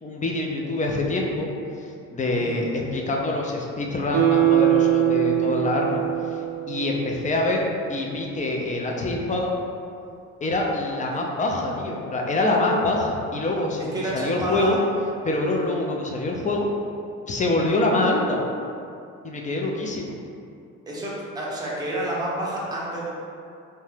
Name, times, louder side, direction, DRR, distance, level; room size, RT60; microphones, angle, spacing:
voice 1, 0.0-1.5 1.8-6.0 6.3-6.4 6.7-7.6 7.9-9.5 10.4-14.8 15.2-16.7 17.3-18.4 19.2-20.1, left 2 dB, 25° left, -1 dB, 0.4 m, -25 dB
Guitar, 4.1-7.4 7.8-7.9, right 12 dB, 75° right, 0.5 m, -22 dB
voice 2, 13.9-14.8 15.5-15.6 20.9-23.1, right 1 dB, 15° right, -6 dB, 0.6 m, -29 dB
2.8 x 2.2 x 3.2 m, 2.5 s
cardioid pair, 90°, 30 cm